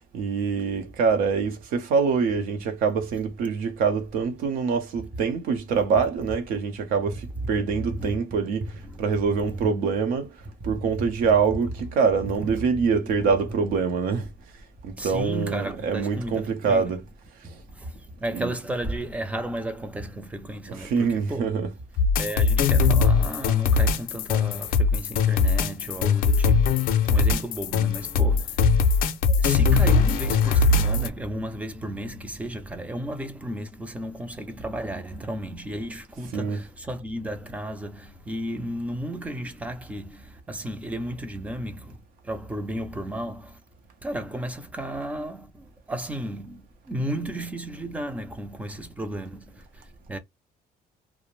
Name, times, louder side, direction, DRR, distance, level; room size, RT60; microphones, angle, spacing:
voice 1, 0.0-10.3 10.6-14.3 14.8-17.0 17.4-17.5 18.3-18.5 20.7-21.7 36.3-36.7, right 5 dB, 60° right, 0.7 m, -25 dB
voice 2, 7.8-8.2 8.9-9.1 9.5-9.7 10.7-11.1 12.5-13.3 15.0-16.9 17.4-21.6 22.2-28.9 29.3-42.0 42.2-43.6 44.0-50.2, right 1 dB, 10° right, 0.4 m, -34 dB
sound 1, 22.0-31.1, left 4 dB, 60° left, 0.5 m, -21 dB
2.5 x 2.0 x 3.0 m
cardioid pair, 165°, 17 cm